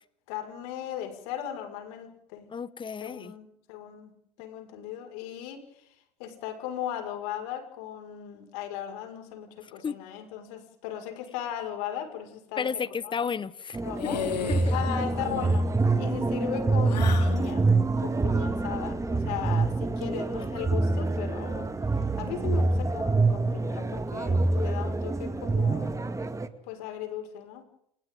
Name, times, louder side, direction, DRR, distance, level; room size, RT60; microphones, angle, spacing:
voice 1, 0.3-2.5 3.0-5.6 6.2-12.7 13.0-13.1 13.8-14.2 14.7-15.7 16.0-17.7 18.0-21.7 22.2-25.9 26.2-26.3 26.6-27.6, left 10 dB, 65° left, 6 dB, 5.7 m, -37 dB
voice 2, 2.5-3.3 9.6-10.0 12.6-13.8 14.0-14.2 14.5-14.6 20.0-20.2 20.6-20.7 22.6-22.7, left 6 dB, 25° left, 16 dB, 1.4 m, -33 dB
sound 1, 13.7-26.5, right 3 dB, 15° right, 2.1 m, -26 dB
sound 2, 14.0-14.8 15.1-15.6 16.9-17.4, left 7 dB, 85° left, 3.8 m, -34 dB
29.0 x 28.5 x 3.9 m, 0.73 s
hypercardioid pair, 85°, 21 cm